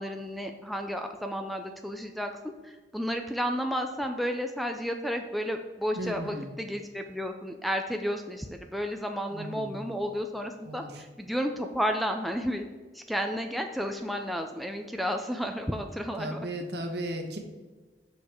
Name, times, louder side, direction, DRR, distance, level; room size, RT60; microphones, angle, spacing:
voice 1, 0.0-12.6 12.9-16.4, equal, ahead, 5 dB, 0.4 m, -32 dB
voice 2, 5.9-6.5 9.3-9.9 10.6-11.0 16.2-17.4, right 1 dB, 65° right, 4 dB, 1.1 m, -36 dB
6.6 x 5.4 x 4.4 m, 1.3 s
head